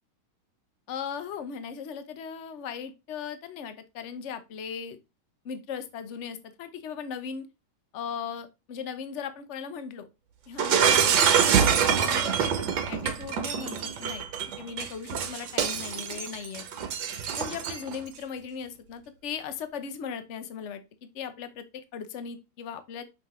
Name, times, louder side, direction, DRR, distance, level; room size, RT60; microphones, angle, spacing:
voice 1, 0.9-5.0 5.4-7.5 7.9-10.1 10.5-14.3 14.6-16.7 17.4-23.0, left 7 dB, 80° left, 10 dB, 0.6 m, -38 dB
Shatter, 10.6-18.0, right 7 dB, 65° right, 1.6 m, -25 dB
6.5 x 5.8 x 3.1 m, 0.25 s
omnidirectional pair, 2.3 m